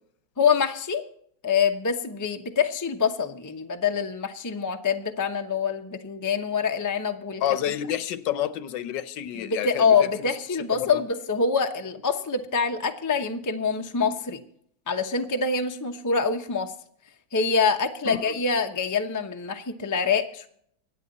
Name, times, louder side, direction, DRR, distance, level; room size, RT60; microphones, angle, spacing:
voice 1, 0.4-1.0 1.4-7.4 9.3-14.4 14.9-16.7 17.3-20.5, left 5 dB, 20° left, 0.4 m, -25 dB
voice 2, 7.4-10.3 10.7-11.0 18.1-18.3, left 11 dB, 75° left, 1.3 m, -29 dB
24.5 x 8.9 x 4.0 m
omnidirectional pair, 2.1 m